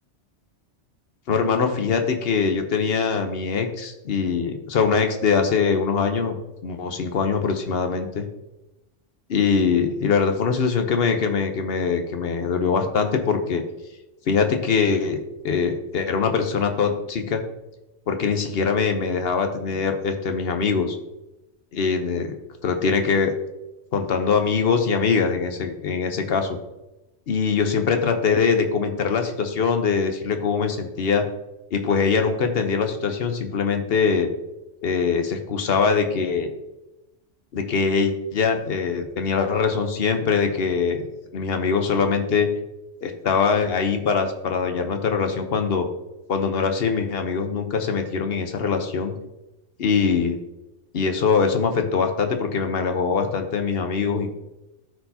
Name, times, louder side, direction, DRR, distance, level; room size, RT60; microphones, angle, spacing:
voice 1, 1.3-6.4 6.6-8.3 9.3-13.6 14.3-15.2 15.4-17.4 18.1-21.0 21.7-22.3 22.6-23.3 23.9-26.6 27.3-31.3 31.7-34.3 34.8-36.5 37.5-41.1 41.3-42.5 43.0-45.9 46.3-49.1 49.8-50.4 50.9-54.3, left 5 dB, 60° left, 6 dB, 1.0 m, -22 dB
13.0 x 4.6 x 2.8 m, 0.99 s
omnidirectional pair, 1.2 m